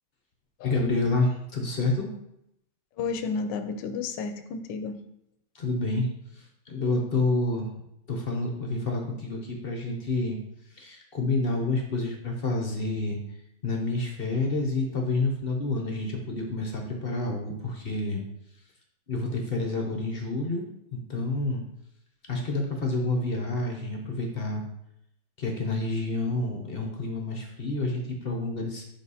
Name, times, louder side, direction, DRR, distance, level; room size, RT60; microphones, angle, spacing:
voice 1, 0.6-2.1 5.5-6.1 6.4-7.7 8.1-10.4 10.8-13.2 13.6-18.2 19.1-20.6 20.9-21.6 22.3-24.6 25.4-28.8, left 2 dB, 40° left, 1 dB, 0.9 m, -28 dB
voice 2, 3.0-5.0, left 5 dB, 70° left, 7 dB, 1.3 m, -32 dB
6.1 x 5.1 x 4.2 m, 0.80 s
omnidirectional pair, 2.1 m